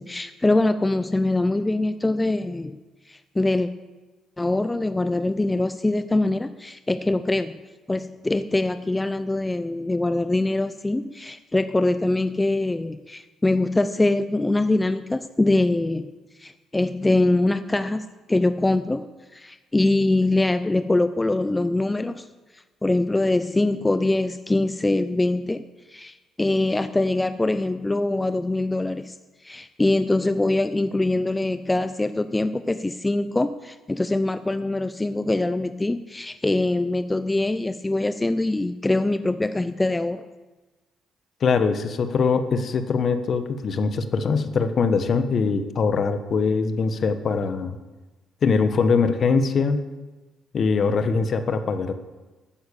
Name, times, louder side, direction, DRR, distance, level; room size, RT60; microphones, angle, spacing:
voice 1, 0.0-2.8 3.1-3.7 4.4-7.5 7.9-16.1 16.4-22.3 22.8-29.1 29.4-40.3, left 2 dB, 15° left, 11 dB, 0.7 m, -23 dB
voice 2, 41.4-47.8 48.4-49.8 50.5-51.9, left 5 dB, 55° left, 10 dB, 1.3 m, -22 dB
13.0 x 9.6 x 7.1 m, 1.2 s
supercardioid pair, 65°, 0 cm